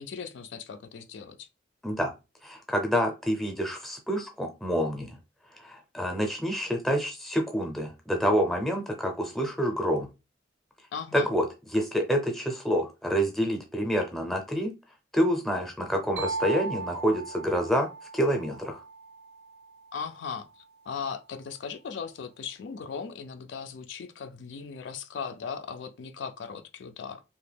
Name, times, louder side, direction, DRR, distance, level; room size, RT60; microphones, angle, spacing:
voice 1, 0.0-1.5 10.9-11.3 19.9-27.2, left 6 dB, 70° left, 0.4 m, -38 dB
voice 2, 2.4-5.2 5.6-10.1 11.1-11.4 11.7-14.7 15.1-17.9 18.1-18.8, equal, ahead, 0.6 m, -27 dB
sound 1, 16.2-19.8, right 3 dB, 65° right, 0.4 m, -37 dB
2.9 x 2.2 x 3.4 m
head